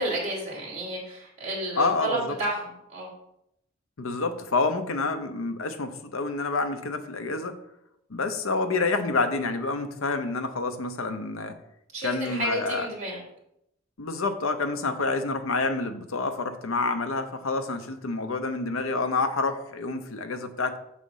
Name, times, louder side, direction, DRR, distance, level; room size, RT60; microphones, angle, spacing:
voice 1, 0.0-3.1 11.9-13.2, right 1 dB, 35° right, -4 dB, 2.5 m, -31 dB
voice 2, 1.8-2.4 4.0-7.6 8.1-11.5 12.0-12.9 14.0-20.8, left 3 dB, 90° left, 9 dB, 0.7 m, -28 dB
6.3 x 4.1 x 5.4 m, 0.80 s
head